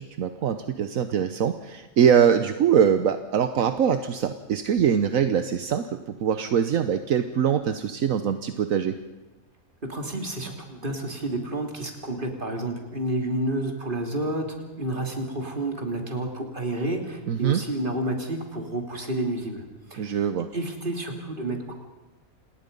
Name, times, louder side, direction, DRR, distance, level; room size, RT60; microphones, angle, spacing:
voice 1, 0.0-9.0 17.3-17.6 20.0-20.5, right 8 dB, 75° right, 9 dB, 1.3 m, -23 dB
voice 2, 9.9-14.5 14.8-19.6 19.9-20.2 20.5-21.7, right 1 dB, 35° right, 3 dB, 3.2 m, -30 dB
28.0 x 20.0 x 5.4 m, 1.1 s
omnidirectional pair, 1.5 m